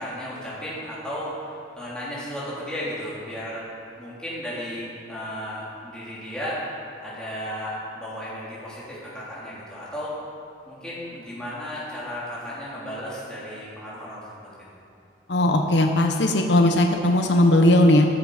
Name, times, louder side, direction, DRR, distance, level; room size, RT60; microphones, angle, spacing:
voice 1, 0.0-3.6 3.9-10.2 10.7-14.5, equal, 5° left, -9 dB, 3.6 m, -34 dB
voice 2, 15.3-18.1, left 1 dB, 75° left, 4 dB, 0.9 m, -18 dB
13.5 x 11.5 x 5.1 m, 2.7 s
head